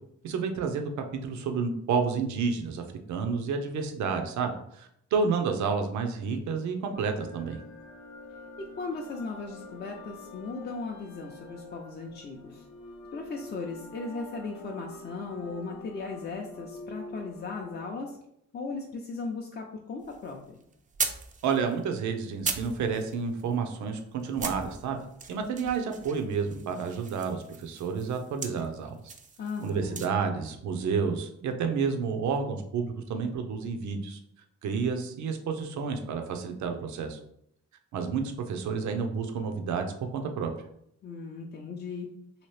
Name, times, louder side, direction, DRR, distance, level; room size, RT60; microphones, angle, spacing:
voice 1, 0.2-0.9 1.2-2.8 3.1-7.6 21.4-25.0 25.3-29.1 29.6-34.2 34.6-37.2 37.9-40.5, right 5 dB, 75° right, 5 dB, 0.6 m, -30 dB
sound 1, 6.9-17.9, left 2 dB, 70° left, 0.7 m, -46 dB
voice 2, 8.6-12.7 13.1-18.2 18.5-20.6 29.4-30.1 41.0-42.1, left 4 dB, 35° left, 0 dB, 0.4 m, -37 dB
sound 2, 20.0-23.6 23.9-24.0 24.2-30.1, right 5 dB, 30° right, 0.4 m, -38 dB
2.9 x 2.7 x 3.1 m, 0.74 s
cardioid pair, 90°, 29 cm